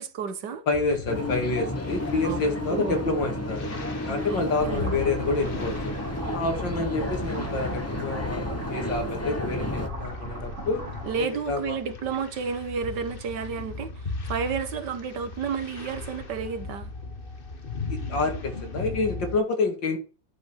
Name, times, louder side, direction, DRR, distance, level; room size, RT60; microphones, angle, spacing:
voice 1, 0.0-0.6 2.2-2.4 2.7-3.0 4.3-5.0 11.0-16.9, right 6 dB, 70° right, 1.7 m, -31 dB
voice 2, 0.7-5.9 6.3-10.8 11.2-11.8 17.9-20.0, left 3 dB, 75° left, 3.1 m, -28 dB
sound 1, 0.7-19.4, left 3 dB, 35° left, 1.2 m, -38 dB
sound 2, 1.1-9.9, left 1 dB, 10° left, 0.7 m, -32 dB
sound 3, 4.6-11.2, right 1 dB, 40° right, 3.2 m, -38 dB
11.0 x 5.5 x 6.4 m
omnidirectional pair, 2.0 m